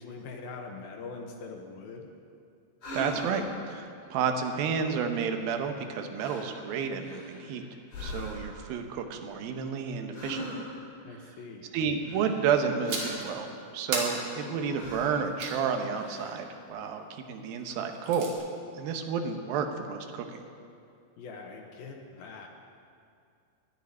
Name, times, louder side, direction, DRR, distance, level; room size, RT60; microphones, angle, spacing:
voice 1, 0.0-2.1 11.0-11.7 21.2-22.5, left 4 dB, 70° left, 2 dB, 2.5 m, -43 dB
sound 1, 2.8-3.6 5.6-5.9 6.2-6.6 7.0-7.5 7.9-8.6 10.1-10.9 12.0-13.3 13.9-14.4 14.7-15.2 15.9-16.5, left 1 dB, 45° left, 5.6 m, -41 dB
voice 2, 2.9-7.6 8.0-10.7 11.7-13.5 13.7-18.4 18.7-20.4, right 6 dB, 75° right, 5 dB, 2.3 m, -31 dB
sound 2, 12.9-13.3 13.9-15.6 17.7-18.3, right 3 dB, 50° right, 2.7 m, -35 dB
11.0 x 10.5 x 9.9 m, 2.4 s
omnidirectional pair, 5.2 m